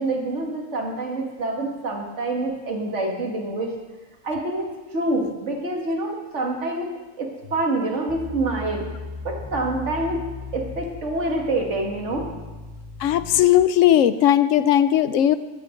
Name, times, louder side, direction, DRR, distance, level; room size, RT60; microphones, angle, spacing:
voice 1, 0.0-3.7 4.2-6.9 7.2-8.8 9.2-10.2 10.5-12.3, right 2 dB, 65° right, 0 dB, 2.2 m, -26 dB
sound 1, 8.1-13.4, left 3 dB, 5° left, 2.9 m, -37 dB
voice 2, 13.0-15.4, left 11 dB, 80° left, 13 dB, 1.0 m, -17 dB
13.0 x 9.0 x 5.1 m, 1.2 s
omnidirectional pair, 1.3 m